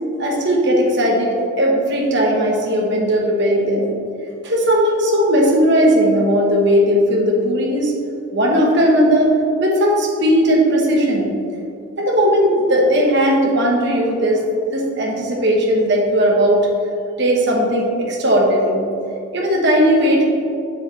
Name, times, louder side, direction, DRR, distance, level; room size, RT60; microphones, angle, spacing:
voice 1, 0.2-3.9 4.4-7.9 8.3-9.3 9.6-11.3 12.0-14.4 14.7-16.7 17.2-18.8 19.3-20.2, equal, 55° right, -1 dB, 1.2 m, -17 dB
7.4 x 7.1 x 3.2 m, 2.6 s
head